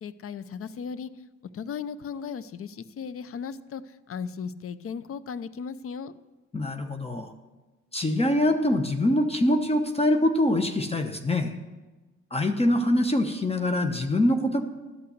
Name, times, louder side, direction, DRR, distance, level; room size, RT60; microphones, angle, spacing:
voice 1, 0.0-1.1 1.5-6.1, left 6 dB, 50° left, 16 dB, 0.6 m, -36 dB
voice 2, 6.5-7.3 7.9-11.5 12.3-14.6, left 1 dB, 20° left, 6 dB, 0.9 m, -24 dB
12.5 x 5.7 x 7.9 m, 1.2 s
cardioid pair, 90°, 30 cm